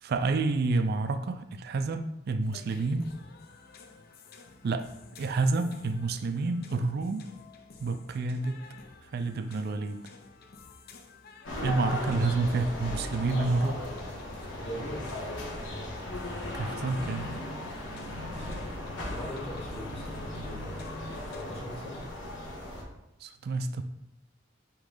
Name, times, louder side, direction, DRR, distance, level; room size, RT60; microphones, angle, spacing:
voice 1, 0.0-3.1 4.6-4.9 5.2-7.3 7.8-8.6 9.0-10.0 11.6-13.8 14.1-14.2 16.5-17.3 23.2-23.8, right 3 dB, 55° right, 9 dB, 0.4 m, -29 dB
sound 1, 2.4-21.4, left 3 dB, 50° left, 0.6 m, -53 dB
sound 2, 11.4-22.8, left 1 dB, 70° left, 1.9 m, -37 dB
voice 2, 14.5-15.1 19.1-22.1, equal, 30° left, -2 dB, 1.4 m, -42 dB
8.2 x 3.1 x 3.8 m, 0.88 s
head